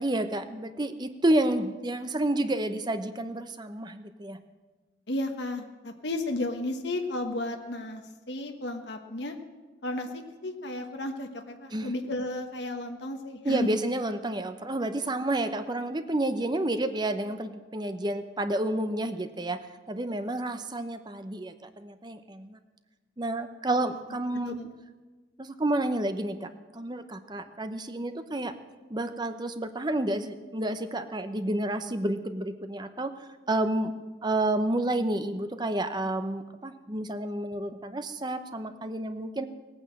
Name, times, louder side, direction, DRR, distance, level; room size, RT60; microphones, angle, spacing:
voice 1, 0.0-4.4 11.7-11.9 13.4-22.6 23.2-24.6 25.4-28.5 28.9-33.1 33.5-33.9 34.2-39.5, right 1 dB, 20° right, 9 dB, 0.7 m, -30 dB
voice 2, 5.1-9.4 9.8-13.7 23.8-23.9 24.4-24.7, left 2 dB, 60° left, 4 dB, 1.1 m, -33 dB
17.5 x 9.2 x 7.6 m, 1.3 s
head